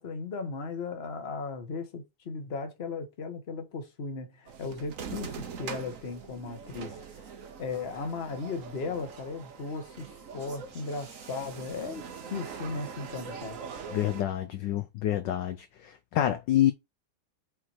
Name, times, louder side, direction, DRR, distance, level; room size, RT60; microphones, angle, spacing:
voice 1, 0.0-7.2 7.6-13.6, left 4 dB, 35° left, 1.3 m, -37 dB
sound 1, 4.5-14.2, right 6 dB, 50° right, 1.1 m, -43 dB
voice 2, 13.9-16.7, left 12 dB, 70° left, 1.1 m, -27 dB
6.1 x 4.2 x 4.5 m
omnidirectional pair, 2.3 m